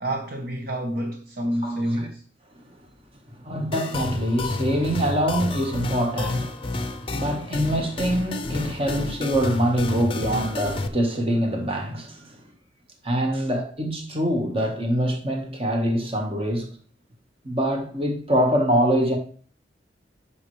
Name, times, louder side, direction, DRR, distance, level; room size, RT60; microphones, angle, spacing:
voice 1, 0.0-2.2, equal, 55° right, 1.1 m, -28 dB
voice 2, 1.6-2.1 3.3-12.3 13.0-16.7 17.4-19.2, equal, 30° right, 1.5 m, -24 dB
sound 1, 3.7-10.9, left 2 dB, 30° left, 0.6 m, -30 dB
10.5 x 5.8 x 3.3 m
head